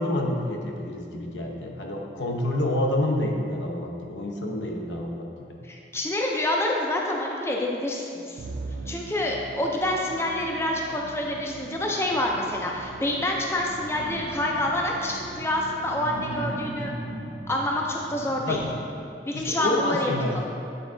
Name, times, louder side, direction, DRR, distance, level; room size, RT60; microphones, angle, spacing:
voice 1, 0.0-5.6 18.5-18.7 19.3-20.3, left 1 dB, 90° left, 0 dB, 0.8 m, -28 dB
voice 2, 5.7-8.4 8.9-16.9 17.5-18.6 19.3-20.4, left 1 dB, 15° left, -1 dB, 0.4 m, -27 dB
Musical instrument, 8.4-16.9, right 3 dB, 75° right, 0.4 m, -41 dB
sound 1, 13.7-14.9 15.9-19.1 19.6-19.7, right 1 dB, 25° right, 0.9 m, -37 dB
7.9 x 3.6 x 3.8 m, 2.5 s
head